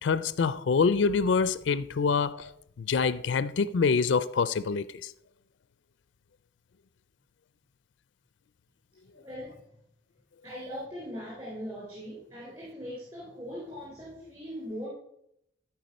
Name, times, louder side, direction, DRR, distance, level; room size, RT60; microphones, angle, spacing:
voice 1, 0.0-2.5 2.8-5.1, left 5 dB, 80° left, 0.4 m, -26 dB
voice 2, 9.1-9.6 10.4-14.9, equal, 25° right, 3.4 m, -40 dB
13.0 x 4.6 x 5.3 m
head